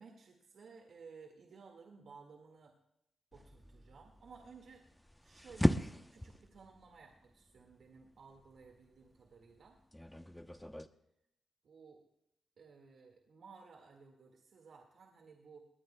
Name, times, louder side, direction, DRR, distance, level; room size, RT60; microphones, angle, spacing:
voice 1, 0.0-2.8 3.3-4.8 5.2-9.8 11.6-12.0 12.6-15.7, right 5 dB, 70° right, 2 dB, 1.9 m, -57 dB
sound 1, 3.3-10.9, equal, 5° left, 0.8 m, -39 dB
21.0 x 19.0 x 2.3 m, 0.80 s
cardioid pair, 60°, 0 cm